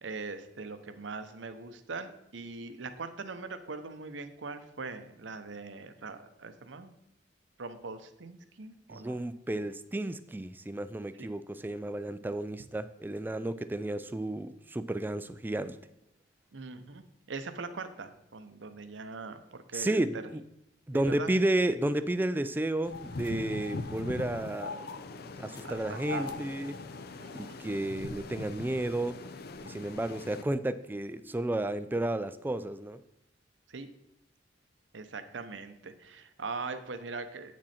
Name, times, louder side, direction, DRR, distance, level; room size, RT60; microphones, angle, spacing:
voice 1, 0.0-6.9 7.6-9.2 11.2-11.3 16.5-20.0 20.9-21.3 25.6-26.3 27.1-27.6 33.7-33.9 34.9-37.5, right 4 dB, 75° right, 10 dB, 0.8 m, -41 dB
voice 2, 8.9-15.8 19.7-20.4 20.9-24.8 25.4-26.8 27.3-29.2 29.6-33.0, right 1 dB, 10° right, 13 dB, 0.3 m, -32 dB
sound 1, 22.8-30.4, left 3 dB, 55° left, 0.6 m, -41 dB
8.7 x 6.2 x 4.3 m, 0.78 s
head